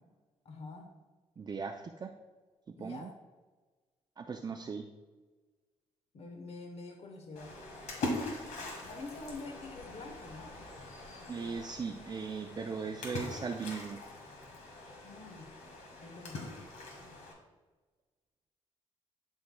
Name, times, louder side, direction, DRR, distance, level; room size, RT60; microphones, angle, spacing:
voice 1, 0.4-0.9 2.8-3.1 6.1-7.6 8.9-10.6 15.0-15.5 16.0-16.6, left 3 dB, 60° left, 3 dB, 1.0 m, -46 dB
voice 2, 1.4-2.1 2.8-3.1 4.2-4.9 11.3-14.0, right 5 dB, 35° right, 3 dB, 0.5 m, -38 dB
Splash splatter, 7.4-17.3, left 2 dB, 80° left, 1.7 m, -42 dB
11.5 x 4.6 x 2.2 m, 1.3 s
cardioid pair, 80°, 12 cm